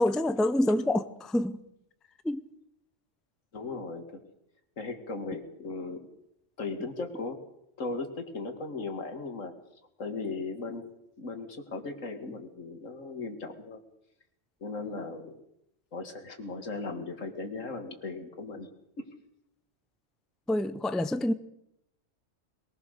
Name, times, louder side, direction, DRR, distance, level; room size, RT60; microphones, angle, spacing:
voice 1, 0.0-1.6 2.2-2.4 20.5-21.3, left 1 dB, ahead, 0.5 m, -26 dB
voice 2, 3.5-4.2 4.8-6.0 6.6-7.4 7.8-9.5 10.0-10.9 11.2-13.8 14.6-15.3 15.9-18.7, left 3 dB, 80° left, 2.5 m, -37 dB
22.0 x 18.5 x 6.6 m
omnidirectional pair, 1.3 m